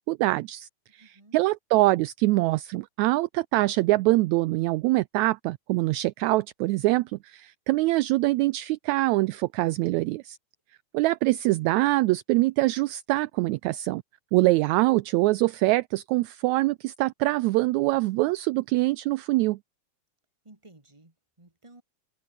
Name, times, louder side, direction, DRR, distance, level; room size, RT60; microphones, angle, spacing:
voice 1, 0.0-10.4 10.9-14.0 14.3-19.6, right 19 dB, 80° right, 1.7 m, -24 dB
voice 2, 1.0-1.4 20.4-21.8, right 2 dB, 10° right, 3.0 m, -54 dB
omnidirectional pair, 3.7 m